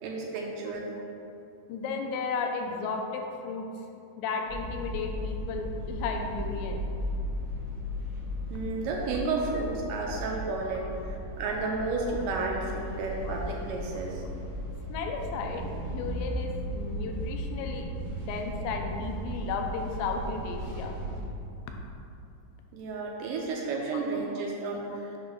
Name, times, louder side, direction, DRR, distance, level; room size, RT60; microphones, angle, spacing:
voice 1, 0.0-0.9 8.5-14.2 22.7-25.1, right 3 dB, 80° right, -1 dB, 2.0 m, -32 dB
voice 2, 1.7-3.7 4.2-6.9 13.3-13.4 14.9-21.0, left 4 dB, 80° left, 3 dB, 2.2 m, -34 dB
sound 1, 4.5-21.2, equal, 65° right, 1.1 m, -36 dB
7.5 x 2.5 x 5.6 m, 2.7 s
omnidirectional pair, 4.1 m